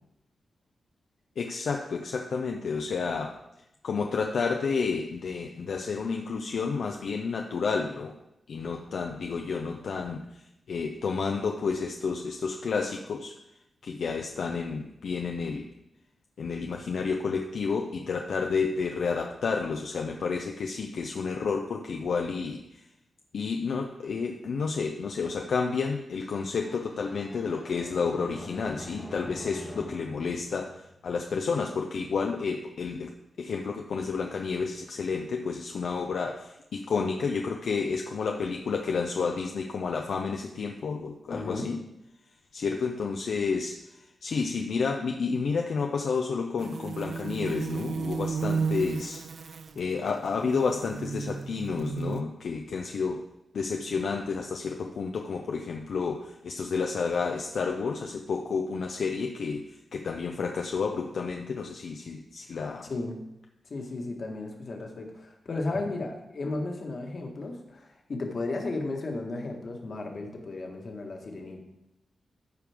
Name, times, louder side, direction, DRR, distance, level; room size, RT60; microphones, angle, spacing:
voice 1, 1.4-3.4 3.8-8.2 8.5-13.3 13.8-15.7 16.4-22.8 23.3-41.8 42.5-43.8 44.2-53.2 53.5-59.6 59.9-62.9, left 5 dB, 70° left, 2 dB, 0.6 m, -30 dB
sound 1, 26.6-31.4, left 1 dB, 10° left, 1.0 m, -45 dB
voice 2, 41.3-41.7 62.8-63.2 63.7-71.6, left 2 dB, 50° left, 2 dB, 1.6 m, -34 dB
sound 2, 46.6-52.2, right 5 dB, 60° right, 0.5 m, -33 dB
14.0 x 5.0 x 3.5 m, 0.85 s
wide cardioid pair, 120°, 0 cm